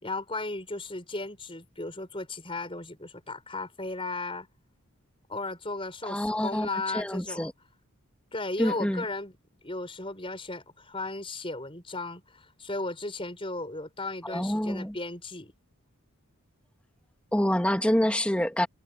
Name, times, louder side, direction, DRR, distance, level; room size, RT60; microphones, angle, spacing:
voice 1, 0.0-4.5 5.3-7.5 8.3-9.4 9.6-15.5, left 2 dB, 25° left, 5.9 m, -35 dB
voice 2, 6.1-6.7 6.9-7.5 8.6-9.0 14.2-15.0 17.3-18.7, equal, 5° left, 2.2 m, -26 dB
head